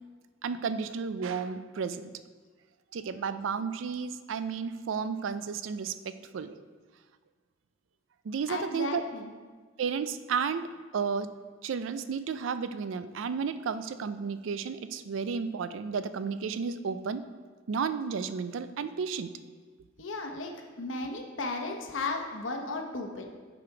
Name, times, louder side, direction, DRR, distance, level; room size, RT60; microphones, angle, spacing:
voice 1, 0.4-2.1 2.9-6.6 8.2-9.0 9.8-11.3 11.6-17.3 17.7-19.3, right 6 dB, 70° right, 12 dB, 0.4 m, -32 dB
voice 2, 8.5-9.3 20.0-23.3, left 3 dB, 70° left, 3 dB, 0.9 m, -35 dB
7.2 x 5.0 x 4.8 m, 1.5 s
head